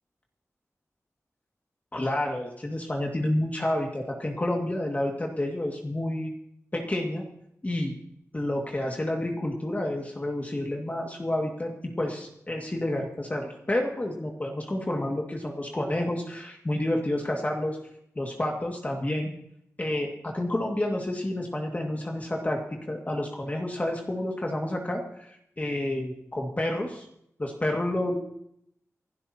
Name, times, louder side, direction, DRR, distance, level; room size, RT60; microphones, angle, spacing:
voice 1, 1.9-6.3 6.7-7.2 7.6-7.9 8.3-17.8 18.2-19.3 19.8-22.6 22.9-27.1 27.4-28.2, left 1 dB, 30° left, 0 dB, 2.1 m, -29 dB
28.0 x 12.0 x 2.9 m, 0.75 s
wide cardioid pair, 110°, 6 cm